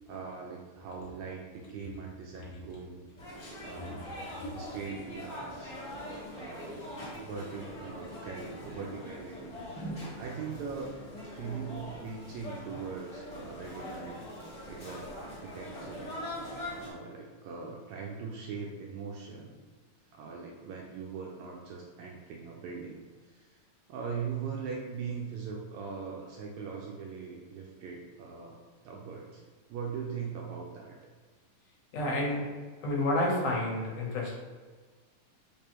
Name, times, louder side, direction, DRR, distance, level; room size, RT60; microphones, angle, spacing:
voice 1, 0.1-3.0 3.6-4.1 4.5-5.7 6.3-6.8 7.1-9.9 10.1-14.2 14.7-16.3 16.7-19.5 20.1-23.6 23.9-28.6 28.8-29.4 29.7-31.0, right 5 dB, 80° right, -1 dB, 1.7 m, -41 dB
sound 1, 3.2-16.9, equal, 60° left, 0.8 m, -42 dB
voice 2, 31.9-32.4 32.8-34.4, left 1 dB, 80° left, -2 dB, 2.4 m, -29 dB
5.0 x 3.4 x 2.9 m, 1.5 s
omnidirectional pair, 3.6 m